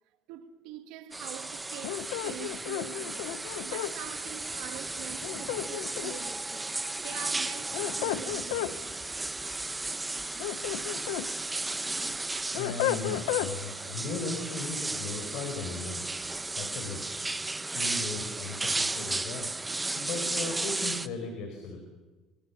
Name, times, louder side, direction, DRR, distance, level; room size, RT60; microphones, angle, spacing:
voice 1, 0.3-8.9, right 12 dB, 75° right, 2.1 m, -45 dB
sound 1, 1.1-21.1, right 2 dB, 15° right, 0.9 m, -34 dB
sound 2, 1.8-3.9 5.2-6.3 7.5-8.7 10.2-11.3 11.7-13.5, left 14 dB, 90° left, 0.8 m, -33 dB
sound 3, 3.9-11.5, left 1 dB, 5° left, 1.3 m, -50 dB
voice 2, 12.5-16.1 16.5-17.1 17.6-19.5 19.9-21.8, left 3 dB, 70° left, 4.8 m, -37 dB
25.0 x 24.0 x 7.2 m
supercardioid pair, 100°, 0 cm